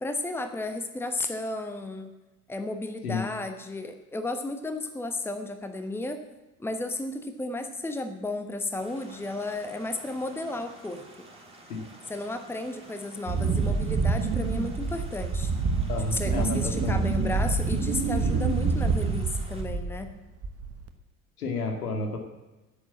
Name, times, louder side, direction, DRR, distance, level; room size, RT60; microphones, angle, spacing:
voice 1, 0.0-2.1 2.5-6.2 6.6-11.0 12.1-15.5 16.0-20.1, left 2 dB, 5° left, 7 dB, 1.1 m, -33 dB
sound 1, 8.8-19.6, right 2 dB, 15° right, 3.5 m, -50 dB
Wind, 13.3-20.1 20.4-20.9, right 4 dB, 30° right, 1.2 m, -27 dB
voice 2, 15.9-17.0 21.4-22.2, left 4 dB, 70° left, 4 dB, 2.2 m, -31 dB
10.5 x 7.9 x 8.4 m, 1.0 s
figure-of-eight pair, 60°, 46 cm